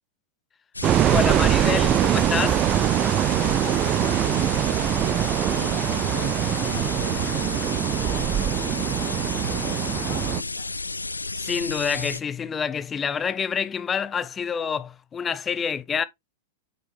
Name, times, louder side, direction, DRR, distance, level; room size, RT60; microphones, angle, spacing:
sound 1, 0.7-12.2, left 3 dB, 85° left, 0.4 m, -32 dB
sound 2, 0.8-10.4, right 12 dB, 30° right, 0.3 m, -23 dB
voice 1, 1.1-2.7 11.4-16.0, left 7 dB, 20° left, 0.5 m, -27 dB
voice 2, 3.4-5.1 5.4-10.8, left 17 dB, 50° left, 0.9 m, -43 dB
8.1 x 5.2 x 3.2 m
figure-of-eight pair, 95°, 0 cm